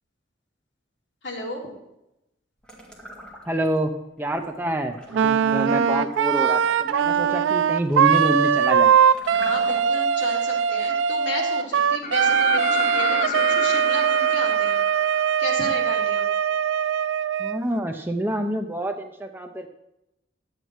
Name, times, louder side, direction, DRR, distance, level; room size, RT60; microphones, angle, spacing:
voice 1, 1.2-1.7 9.4-14.8 15.4-16.3, left 1 dB, 65° left, -3 dB, 3.1 m, -33 dB
sound 1, 2.6-3.8 4.2-10.1, right 1 dB, 5° left, 1.9 m, -44 dB
voice 2, 3.5-8.9 17.4-19.7, right 1 dB, 10° right, 5 dB, 0.6 m, -27 dB
Wind instrument woodwind instrument, 5.1-17.6, right 8 dB, 75° right, 0.4 m, -21 dB
sound 2, 12.0-15.8 17.7-17.8, left 5 dB, 40° left, 0.5 m, -30 dB
11.0 x 8.2 x 4.6 m, 0.87 s
head